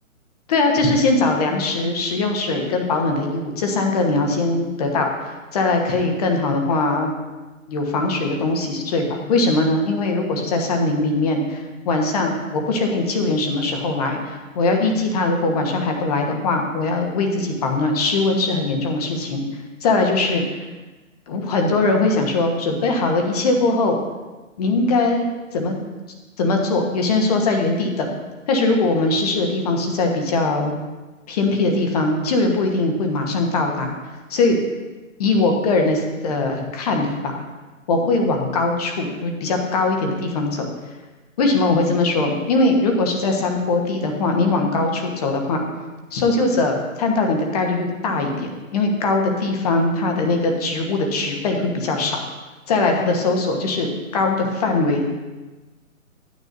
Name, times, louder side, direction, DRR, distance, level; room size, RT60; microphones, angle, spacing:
voice 1, 0.5-7.1 7.7-19.5 19.8-20.4 21.3-24.0 24.6-25.8 26.4-28.1 28.5-30.8 31.3-33.9 34.3-34.6 35.2-37.4 37.9-40.7 41.4-45.6 46.1-52.2 52.7-55.1, left 3 dB, 30° left, 3 dB, 1.1 m, -21 dB
13.0 x 9.4 x 2.6 m, 1.2 s
hypercardioid pair, 150°, 41 cm